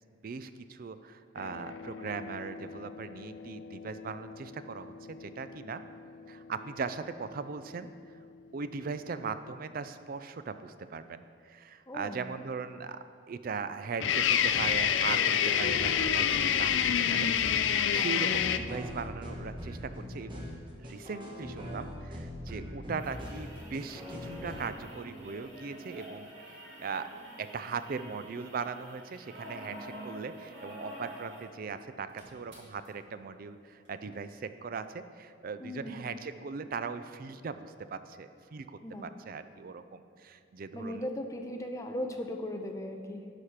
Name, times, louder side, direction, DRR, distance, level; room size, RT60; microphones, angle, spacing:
voice 1, 0.2-5.8 6.3-7.9 8.5-13.0 13.3-17.3 17.9-20.5 20.8-26.3 26.8-27.1 27.4-41.0, right 5 dB, 50° right, 11 dB, 0.4 m, -39 dB
sound 1, 1.4-7.0 14.0-18.6, left 9 dB, 75° left, 0.4 m, -29 dB
voice 2, 11.9-12.2 17.9-18.1 35.6-36.0 38.8-39.1 40.7-43.3, left 1 dB, 15° left, 3 dB, 0.7 m, -38 dB
sound 2, 14.4-24.6, equal, 25° right, 1.5 m, -42 dB
sound 3, 23.0-31.5 31.8-31.9 32.1-32.9 33.9-34.0, right 1 dB, 65° right, 2.3 m, -47 dB
11.5 x 4.9 x 5.7 m, 2.2 s
head